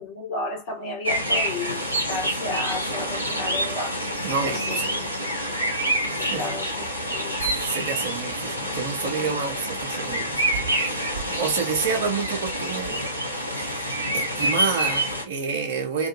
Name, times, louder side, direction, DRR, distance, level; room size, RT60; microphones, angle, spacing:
voice 1, 0.0-4.0 4.4-4.8 6.0-6.9 7.1-7.4, left 3 dB, 50° left, 1.1 m, -32 dB
sound 1, 1.0-15.2, right 1 dB, 90° left, 0.8 m, -27 dB
voice 2, 4.2-5.1 6.1-6.6 7.4-10.4 10.7-13.1 13.4-16.1, right 5 dB, 55° right, 0.7 m, -29 dB
2.6 x 2.4 x 2.6 m
figure-of-eight pair, 90°, 0 cm